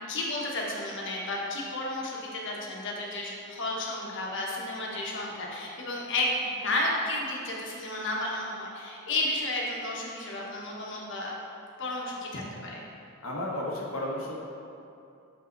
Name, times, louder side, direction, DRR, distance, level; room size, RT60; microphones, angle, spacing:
voice 1, 0.1-11.3 11.8-12.8, left 2 dB, 60° left, -3 dB, 1.3 m, -32 dB
voice 2, 13.2-14.4, left 1 dB, 80° left, -3 dB, 1.2 m, -33 dB
7.3 x 5.2 x 4.0 m, 2.7 s
head